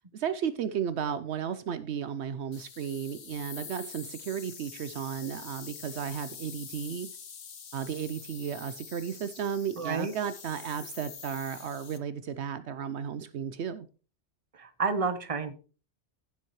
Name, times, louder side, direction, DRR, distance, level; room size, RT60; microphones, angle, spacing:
voice 1, 0.1-7.1 7.7-13.9, right 8 dB, 75° right, 0.9 m, -34 dB
sound 1, 2.5-12.0, left 6 dB, 55° left, 1.1 m, -46 dB
voice 2, 9.8-10.1 14.6-15.5, right 4 dB, 30° right, 1.1 m, -30 dB
16.0 x 7.4 x 3.1 m
omnidirectional pair, 1.2 m